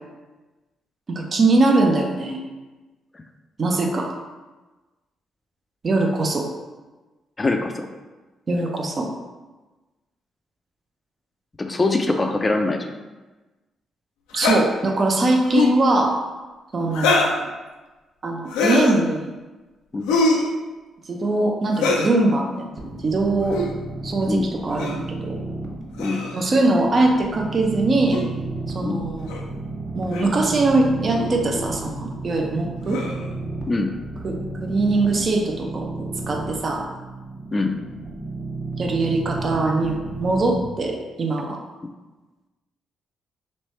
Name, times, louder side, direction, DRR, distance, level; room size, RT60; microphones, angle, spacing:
voice 1, 1.1-2.4 3.6-4.1 5.8-6.5 8.5-9.1 14.3-16.2 16.7-17.5 18.2-19.3 21.0-23.6 24.0-25.4 26.3-28.2 28.7-29.3 29.9-33.0 34.2-35.9 36.3-36.8 38.8-41.6, right 2 dB, 45° right, 1 dB, 0.7 m, -21 dB
voice 2, 7.4-7.9 11.6-12.9 19.9-20.2 24.3-24.5 26.0-26.2 28.8-29.0 33.7-33.9 37.5-37.8, left 3 dB, 30° left, 4 dB, 0.5 m, -23 dB
sound 1, 14.3-14.6 15.4-15.8 16.9-17.4 18.5-19.0 20.1-20.5 21.7-22.1 23.4-23.7 24.8-25.0 26.0-26.4 28.1-28.2 29.3-29.4 30.1-30.3 31.1-31.3 32.9-33.3, left 3 dB, 90° left, 0.5 m, -22 dB
sound 2, 22.8-40.6, right 2 dB, 25° right, 1.2 m, -33 dB
3.3 x 3.1 x 4.3 m, 1.2 s
supercardioid pair, 55°, 0 cm